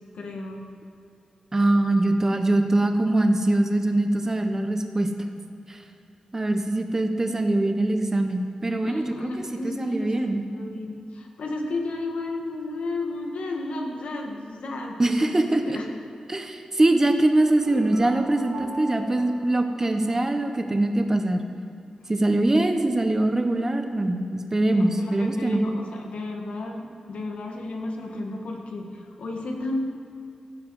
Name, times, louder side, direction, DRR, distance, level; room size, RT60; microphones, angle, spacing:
voice 1, 0.1-0.6 8.8-15.8 24.7-29.8, left 2 dB, 85° left, 1 dB, 1.5 m, -33 dB
voice 2, 1.5-5.1 5.7-5.8 6.3-9.3 9.6-10.4 15.0-15.8 16.3-21.4 22.1-25.6, right 2 dB, 25° right, 6 dB, 0.8 m, -23 dB
sound 1, 17.4-20.5, right 2 dB, 80° right, 1.1 m, -39 dB
15.0 x 7.3 x 4.8 m, 2.5 s
wide cardioid pair, 125°, 2 cm